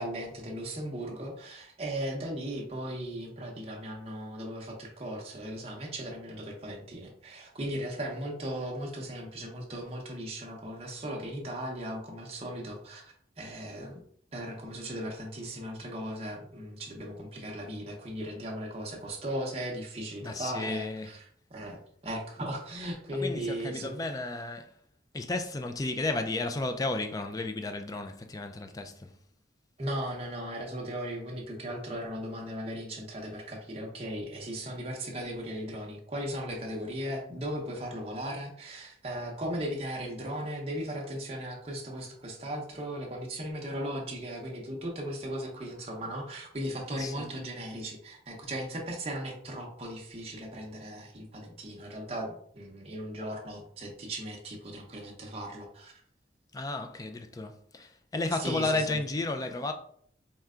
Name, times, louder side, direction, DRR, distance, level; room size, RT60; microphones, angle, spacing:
voice 1, 0.0-14.0 14.3-21.8 22.0-23.9 29.8-55.9 58.4-59.0, equal, 30° right, 0.7 m, -37 dB
voice 2, 20.2-21.1 23.2-24.7 25.1-29.1 46.9-47.3 56.5-59.7, left 2 dB, 20° left, 0.3 m, -33 dB
4.4 x 2.2 x 3.6 m
head